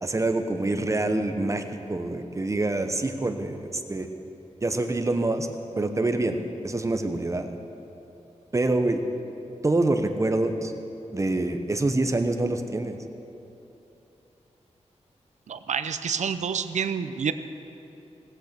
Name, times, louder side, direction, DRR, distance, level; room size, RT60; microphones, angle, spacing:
voice 1, 0.0-1.6 1.9-4.1 4.6-5.5 5.8-6.4 6.6-7.5 8.5-9.0 9.6-10.7 11.1-13.0, right 2 dB, 25° right, 7 dB, 0.8 m, -26 dB
voice 2, 15.5-17.3, right 7 dB, 80° right, 11 dB, 0.6 m, -28 dB
18.0 x 8.2 x 6.8 m, 2.9 s
wide cardioid pair, 125°, 12 cm